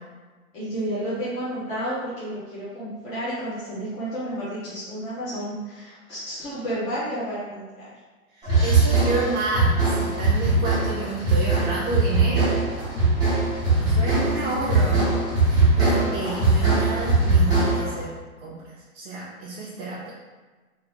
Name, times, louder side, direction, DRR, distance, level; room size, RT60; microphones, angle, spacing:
voice 1, 0.5-7.9 13.9-14.1 14.4-15.1, right 1 dB, 20° left, -11 dB, 0.5 m, -31 dB
sound 1, 8.4-18.0, right 3 dB, 10° right, 0.8 m, -21 dB
voice 2, 8.4-12.6 13.8-15.1 15.4-18.1 18.4-18.6 18.9-20.1, right 3 dB, 40° right, -5 dB, 0.6 m, -30 dB
3.0 x 2.6 x 2.9 m, 1.3 s
hypercardioid pair, 135°, 42 cm